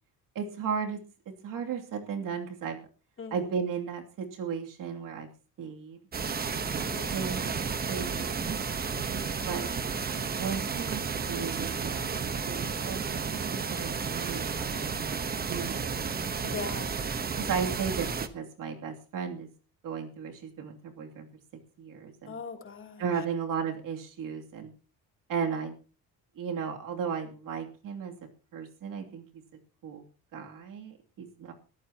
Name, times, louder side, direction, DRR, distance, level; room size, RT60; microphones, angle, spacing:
voice 1, 0.3-1.0 1.4-2.8 3.3-5.3 5.6-6.0 6.6-8.6 9.1-9.7 10.4-15.2 15.5-16.3 17.4-19.5 19.8-21.3 21.8-22.3 23.0-24.7 25.3-25.7 26.4-28.1 28.5-29.4 29.8-30.0 30.3-31.5, right 6 dB, 60° right, 3 dB, 2.9 m, -35 dB
voice 2, 3.2-3.6 6.9-7.4 16.4-16.9 22.3-23.0, left 5 dB, 35° left, 3 dB, 3.1 m, -41 dB
sound 1, 6.1-18.3, right 5 dB, 25° right, 1.1 m, -32 dB
22.0 x 14.0 x 2.9 m, 0.35 s
cardioid pair, 155°, 36 cm